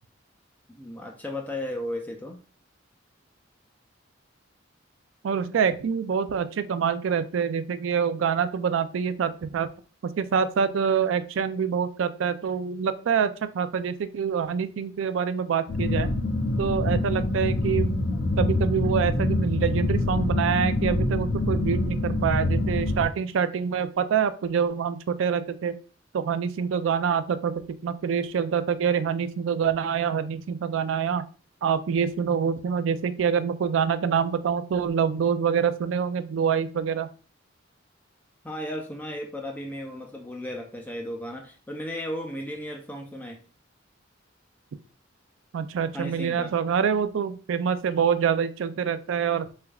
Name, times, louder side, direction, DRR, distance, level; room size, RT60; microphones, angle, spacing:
voice 1, 0.7-2.4 38.4-43.4 45.9-46.5, left 1 dB, 10° left, 1 dB, 0.4 m, -35 dB
voice 2, 5.2-9.7 10.2-16.1 16.6-18.0 18.4-25.8 26.1-31.2 31.6-37.1 45.5-49.5, right 7 dB, 80° right, 11 dB, 0.3 m, -26 dB
sound 1, 15.7-23.0, left 2 dB, 65° left, 0.5 m, -25 dB
3.4 x 3.3 x 2.3 m, 0.37 s
head